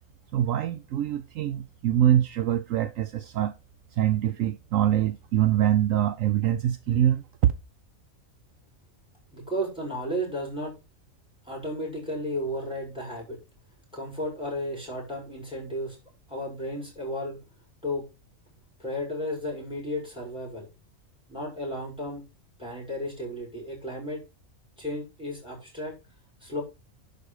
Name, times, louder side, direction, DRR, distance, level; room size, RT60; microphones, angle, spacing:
voice 1, 0.3-3.5 3.9-7.5, right 11 dB, 70° right, 1.0 m, -24 dB
voice 2, 9.3-10.7 11.5-13.4 13.9-16.0 16.3-17.4 17.8-18.0 18.8-20.7 21.3-22.2 22.6-24.2 24.8-25.9 26.4-26.6, equal, 5° right, 5.8 m, -33 dB
11.0 x 4.9 x 4.8 m
omnidirectional pair, 1.4 m